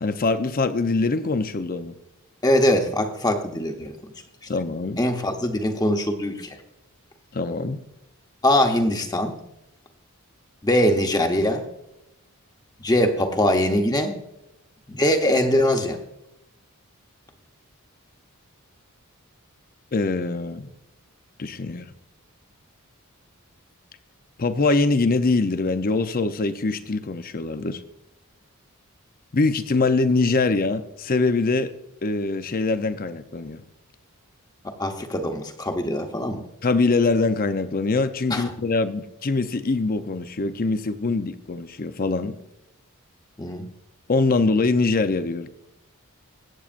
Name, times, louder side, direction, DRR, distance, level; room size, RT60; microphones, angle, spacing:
voice 1, 0.0-2.0 4.5-5.0 7.3-7.8 19.9-20.7 21.4-21.9 24.4-27.8 29.3-31.7 32.0-33.6 36.6-42.4 44.1-45.5, left 3 dB, 40° left, 11 dB, 0.6 m, -23 dB
voice 2, 2.4-3.9 5.0-6.6 8.4-9.4 10.6-11.6 12.8-14.1 14.9-16.0 34.8-36.4 38.3-38.4 43.4-43.7, left 1 dB, 15° left, 4 dB, 1.0 m, -22 dB
22.5 x 8.3 x 2.5 m, 0.88 s
head